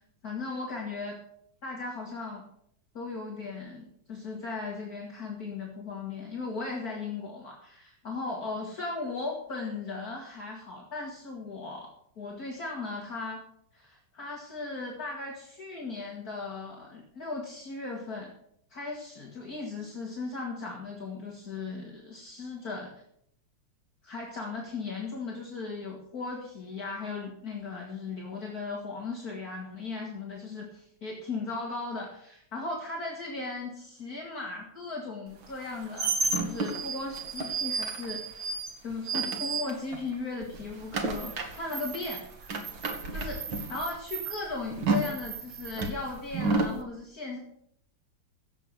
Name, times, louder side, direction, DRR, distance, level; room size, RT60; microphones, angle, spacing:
voice 1, 0.2-1.2 1.6-2.4 2.9-13.4 13.7-18.3 18.7-22.9 24.1-38.2 38.8-42.2 43.1-47.4, left 3 dB, 50° left, -2 dB, 2.5 m, -37 dB
sound 1, 35.5-40.1 40.4-46.8, right 3 dB, 75° right, 2.6 m, -32 dB
16.0 x 7.8 x 6.5 m, 0.72 s
omnidirectional pair, 2.1 m